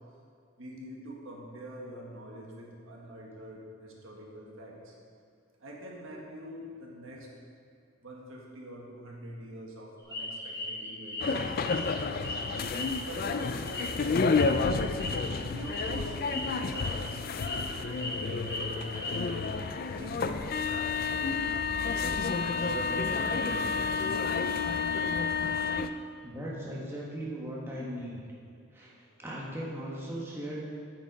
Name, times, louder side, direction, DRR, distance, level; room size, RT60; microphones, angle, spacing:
voice 1, 0.6-5.0 5.6-7.3 8.0-12.5 13.0-14.3 15.1-19.5 20.0-21.8 22.5-24.7, right 1 dB, 70° right, -2 dB, 1.6 m, -45 dB
sound 1, 10.1-12.0 12.2-15.3 15.6-15.8 16.2-16.4 16.7-17.1 17.4-18.1 18.4-19.5, left 2 dB, 15° left, 1.2 m, -38 dB
sound 2, 11.2-25.9, left 4 dB, 45° left, 0.3 m, -30 dB
voice 2, 26.2-28.2 28.7-30.6, right 1 dB, 10° right, -5 dB, 1.3 m, -38 dB
8.8 x 7.3 x 5.2 m, 2.3 s
head